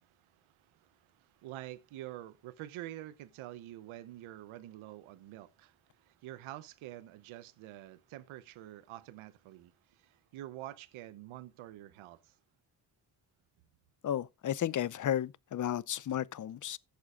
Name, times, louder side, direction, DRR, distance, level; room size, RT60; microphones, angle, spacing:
voice 1, 0.0-12.4, right 14 dB, 85° right, 0.8 m, -47 dB
voice 2, 14.0-16.8, left 10 dB, 40° left, 0.6 m, -33 dB
15.5 x 6.9 x 2.4 m
supercardioid pair, 60°, 48 cm